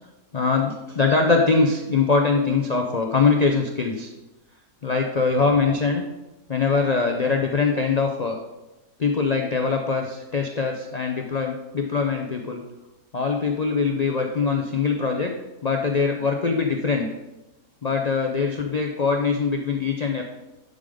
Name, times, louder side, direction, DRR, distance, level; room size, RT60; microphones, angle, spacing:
voice 1, 0.3-4.1 4.8-6.0 6.5-8.4 9.0-12.6 13.1-15.3 15.6-17.1 17.8-20.2, left 4 dB, 90° left, 2 dB, 0.3 m, -22 dB
11.0 x 3.8 x 5.0 m, 1.0 s
omnidirectional pair, 1.7 m